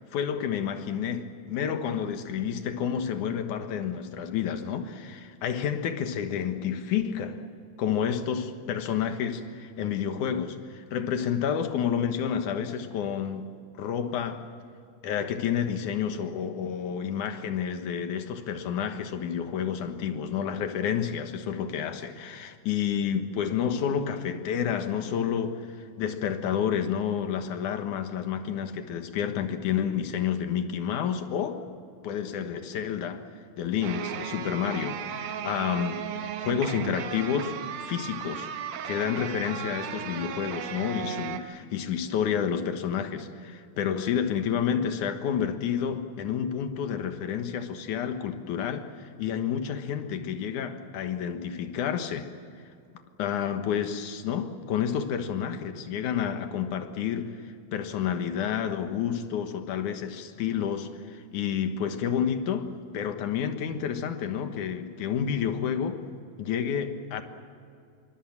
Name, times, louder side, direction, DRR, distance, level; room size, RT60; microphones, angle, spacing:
voice 1, 0.0-7.4 7.8-13.5 13.8-14.5 15.0-31.6 32.0-33.3 33.6-36.0 36.4-38.5 38.8-52.3 53.2-57.4 57.7-66.0 66.4-67.2, left 8 dB, 60° left, 2.6 m, -30 dB
sound 1, 33.8-41.4, right 9 dB, 80° right, 3.0 m, -35 dB
25.5 x 24.0 x 7.4 m
omnidirectional pair, 4.4 m